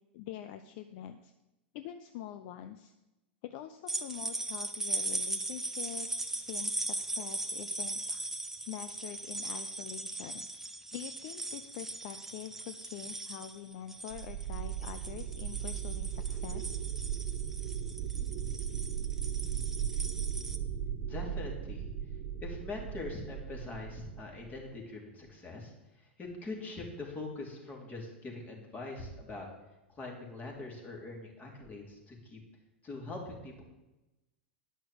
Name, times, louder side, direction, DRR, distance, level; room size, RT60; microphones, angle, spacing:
voice 1, 0.1-1.3 1.7-2.9 3.4-8.2 8.7-10.5 10.9-16.8, left 11 dB, 55° left, 9 dB, 0.7 m, -45 dB
sound 1, 3.9-20.6, right 2 dB, 5° right, 0.8 m, -39 dB
sound 2, 14.1-24.7, right 9 dB, 45° right, 1.4 m, -37 dB
voice 2, 21.0-21.9 22.4-29.5 29.9-32.4 32.8-33.6, left 3 dB, 25° left, 0 dB, 3.5 m, -43 dB
10.0 x 6.1 x 7.8 m, 0.99 s
hypercardioid pair, 100°, 6 cm